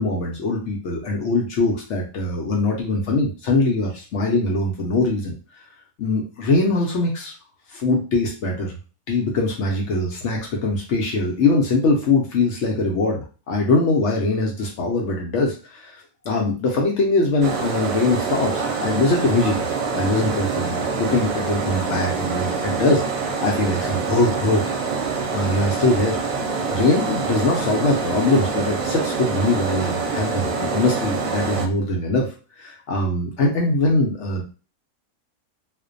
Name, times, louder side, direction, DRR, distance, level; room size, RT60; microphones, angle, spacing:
voice 1, 0.0-5.3 6.0-7.3 7.7-8.7 9.1-26.2 26.7-32.3 32.6-34.4, left 2 dB, 65° left, -1 dB, 0.8 m, -22 dB
sound 1, 17.4-31.7, right 4 dB, 70° right, 0.9 m, -25 dB
2.5 x 2.1 x 2.5 m, 0.35 s
omnidirectional pair, 1.5 m